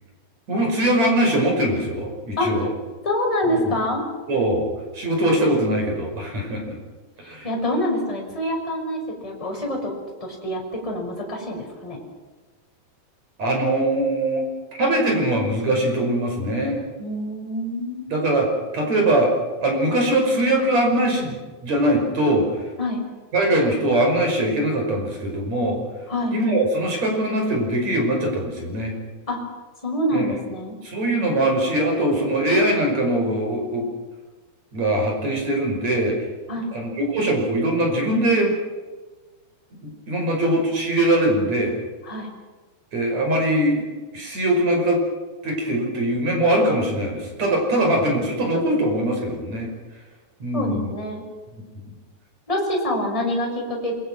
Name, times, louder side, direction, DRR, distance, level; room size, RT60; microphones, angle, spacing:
voice 1, 0.5-2.7 3.5-3.6 4.3-6.8 7.2-7.5 13.4-14.5 14.8-16.8 18.1-19.3 19.6-21.4 21.6-22.6 23.3-25.8 26.3-29.0 30.1-30.3 30.8-33.9 34.7-36.2 36.7-38.5 39.8-41.7 42.9-43.9 44.1-45.0 45.4-49.7 50.4-50.9, right 1 dB, 35° right, 2 dB, 6.4 m, -22 dB
voice 2, 3.0-4.0 7.4-9.9 10.2-12.0 17.0-18.1 22.8-23.0 26.1-26.4 29.3-29.4 29.8-30.8 36.5-36.7 42.0-42.3 47.8-48.0 50.5-51.2 52.5-53.9, left 1 dB, 5° left, -1 dB, 5.6 m, -26 dB
28.0 x 22.5 x 6.3 m, 1.3 s
omnidirectional pair, 5.3 m